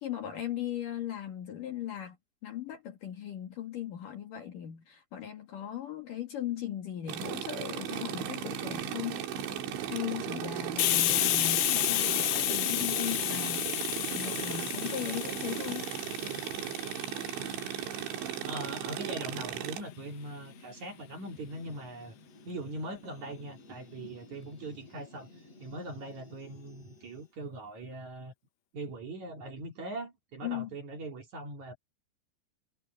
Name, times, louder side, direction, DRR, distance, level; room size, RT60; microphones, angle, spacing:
voice 1, 0.0-2.2 2.4-9.2 9.8-15.9 30.4-30.7, left 11 dB, 55° left, 2.8 m, -38 dB
sound 1, 7.1-19.8, right 10 dB, 75° right, 4.2 m, -36 dB
sound 2, 9.1-27.3, left 3 dB, 35° left, 6.4 m, -55 dB
Hiss, 10.8-18.2, left 18 dB, 85° left, 3.3 m, -31 dB
voice 2, 18.4-22.2 22.4-25.3 25.6-28.3 28.7-31.8, right 2 dB, 45° right, 3.3 m, -41 dB
omnidirectional pair, 5.4 m